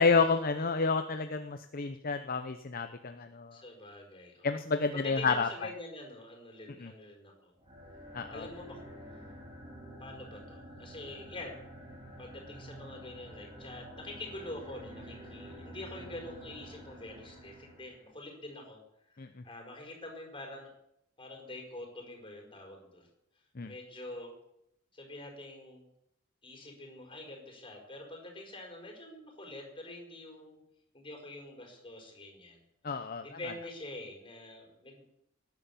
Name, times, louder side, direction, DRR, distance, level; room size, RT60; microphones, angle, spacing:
voice 1, 0.0-3.6 4.4-5.5 6.8-6.9 8.1-8.5 19.2-19.4 23.6-23.7 32.8-33.2, left 4 dB, 45° left, 8 dB, 0.8 m, -30 dB
voice 2, 3.5-4.5 4.9-7.5 8.3-8.8 10.0-11.6 12.2-18.8 19.1-20.7 21.2-23.1 23.6-24.4 24.9-25.9 26.4-30.6 30.9-32.6 33.2-35.0, left 2 dB, 25° left, 1 dB, 5.1 m, -45 dB
sound 1, 7.6-18.1, equal, 25° right, 5.7 m, -49 dB
18.0 x 11.0 x 7.4 m, 0.81 s
head